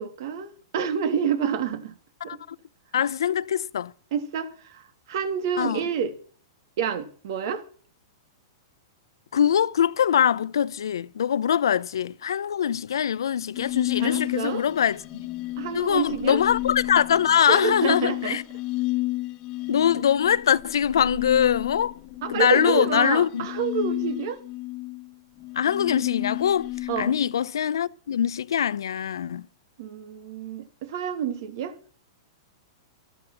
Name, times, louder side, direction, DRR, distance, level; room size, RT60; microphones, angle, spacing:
voice 1, 0.0-2.0 2.2-2.4 4.1-6.1 6.8-7.6 14.0-14.6 15.6-16.4 17.5-18.4 22.2-24.4 26.9-27.1 29.8-31.7, right 7 dB, 60° right, 3.1 m, -28 dB
voice 2, 2.2-2.6 2.9-3.9 5.6-5.8 9.3-15.3 15.7-18.4 19.7-21.9 22.3-23.5 25.5-26.7 27.0-29.5, left 9 dB, 85° left, 0.7 m, -23 dB
sound 1, 13.5-27.5, left 19 dB, 40° left, 1.5 m, -32 dB
14.0 x 13.5 x 6.0 m
hypercardioid pair, 125°, 2 cm